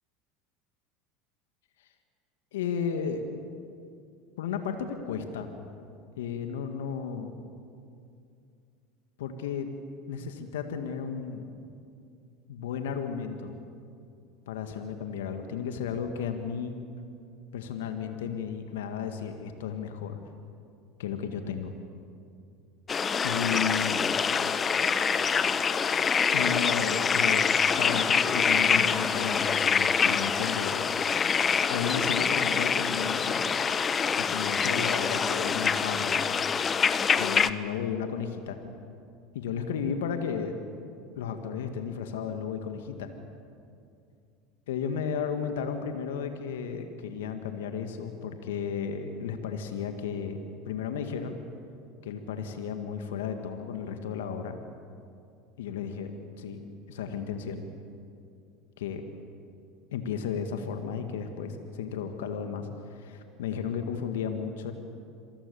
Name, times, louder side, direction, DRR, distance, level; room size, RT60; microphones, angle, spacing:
voice 1, 2.5-3.2 4.4-5.5 6.2-7.3 9.2-9.7 10.1-11.5 12.5-13.6 14.5-16.8 17.5-20.2 21.0-21.7 23.2-24.0 26.3-30.9 31.7-33.4 34.2-36.3 37.2-38.6 39.3-40.6 41.2-43.1 44.7-50.4 50.6-51.4 52.0-54.6 55.6-56.6 56.9-57.6 58.8-59.0 59.9-64.7, left 7 dB, 75° left, 6 dB, 1.9 m, -33 dB
sound 1, 22.9-37.5, left 6 dB, 30° left, 1.0 m, -25 dB
28.0 x 23.0 x 7.1 m, 2.5 s
hypercardioid pair, 80°, 0 cm